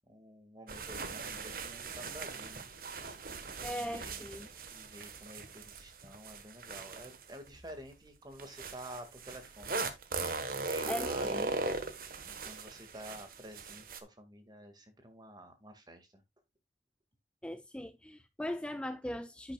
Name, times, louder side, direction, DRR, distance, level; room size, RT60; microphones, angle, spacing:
voice 1, 0.1-2.6 3.6-4.2 4.7-9.9 10.5-11.4 12.3-16.2, right 1 dB, 25° right, 2.0 m, -50 dB
sound 1, 0.7-7.7 8.4-14.0, right 3 dB, 50° right, 1.3 m, -39 dB
voice 2, 3.6-4.5 10.9-11.5 17.4-19.5, left 1 dB, 5° left, 0.4 m, -39 dB
10.5 x 8.7 x 2.4 m
head